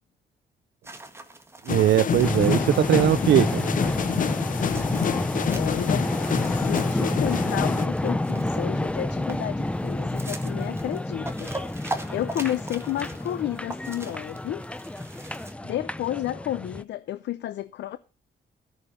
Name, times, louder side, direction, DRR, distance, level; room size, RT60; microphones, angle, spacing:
sound 1, 0.8-15.5, right 2 dB, 15° right, 1.6 m, -42 dB
voice 1, 1.6-3.7, right 12 dB, 85° right, 0.5 m, -20 dB
sound 2, 1.7-7.9, left 8 dB, 50° left, 0.6 m, -28 dB
sound 3, 2.2-16.8, left 1 dB, 5° left, 0.5 m, -29 dB
voice 2, 5.5-6.1 6.5-11.5 12.1-14.7 15.6-18.0, left 13 dB, 90° left, 0.6 m, -31 dB
13.5 x 6.3 x 6.6 m
cardioid pair, 115°, 18 cm